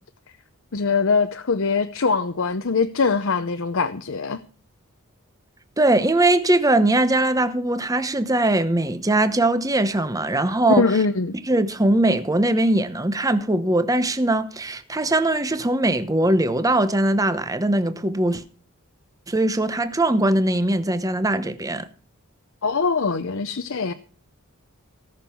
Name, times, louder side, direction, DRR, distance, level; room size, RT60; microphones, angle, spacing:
voice 1, 0.7-4.4 10.8-11.3 22.6-23.9, left 4 dB, 60° left, 0.7 m, -22 dB
voice 2, 5.8-11.0 11.5-18.4 19.3-21.9, right 1 dB, 15° right, 0.9 m, -21 dB
17.5 x 6.6 x 7.1 m
head